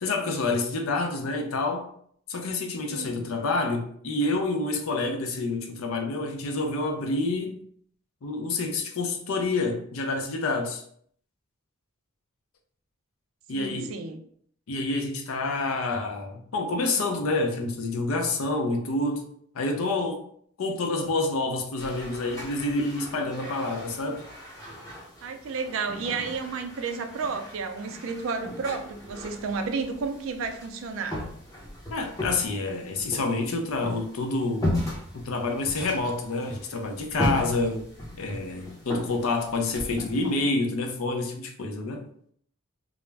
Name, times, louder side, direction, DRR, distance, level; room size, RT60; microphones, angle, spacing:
voice 1, 0.0-1.9 2.3-7.6 8.2-10.8 13.5-13.9 14.7-19.3 19.5-20.2 20.6-24.3 31.9-34.8 35.1-37.9 38.2-42.1, left 2 dB, 85° left, 3 dB, 0.5 m, -28 dB
voice 2, 2.9-3.2 13.5-14.2 25.2-31.2, right 4 dB, 70° right, 6 dB, 0.4 m, -32 dB
sound 1, 21.8-40.4, left 1 dB, 15° left, 0.7 m, -36 dB
2.3 x 2.0 x 3.2 m, 0.63 s
head